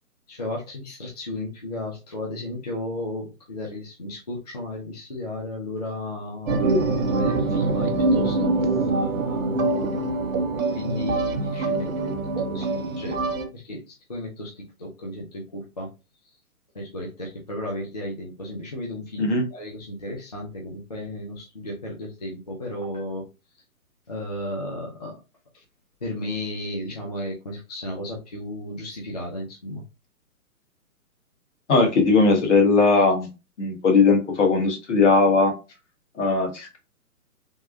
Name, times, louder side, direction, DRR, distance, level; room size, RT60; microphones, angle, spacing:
voice 1, 0.3-10.0 10.5-13.2 13.5-15.9 16.2-16.4 16.7-23.3 23.5-23.6 24.1-25.2 26.0-29.8, left 1 dB, 30° left, -3 dB, 0.4 m, -34 dB
sound 1, 6.5-13.5, right 3 dB, 60° right, 0.7 m, -24 dB
voice 2, 31.7-33.3 33.6-35.5 36.2-36.8, left 4 dB, 50° left, 2 dB, 1.2 m, -19 dB
3.5 x 2.1 x 2.5 m, 0.29 s
figure-of-eight pair, 130°, 45 cm